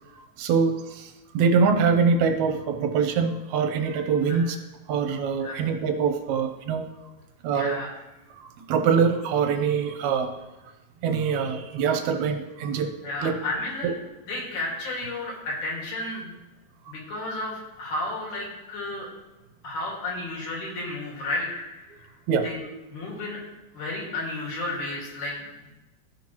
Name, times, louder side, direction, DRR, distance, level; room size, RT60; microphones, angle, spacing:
voice 1, 0.4-4.6 4.9-6.8 7.4-7.8 8.7-10.3 11.0-12.9 13.2-13.4 13.8-13.9 22.3-22.5, right 5 dB, 75° right, 6 dB, 2.1 m, -24 dB
voice 2, 7.5-7.9 13.0-13.9 14.3-16.3 16.9-17.5 17.8-19.1 19.6-21.7 22.4-22.6 22.9-23.4 23.7-25.7, left 2 dB, 70° left, -3 dB, 3.5 m, -32 dB
14.5 x 5.8 x 3.0 m, 1.1 s
omnidirectional pair, 3.5 m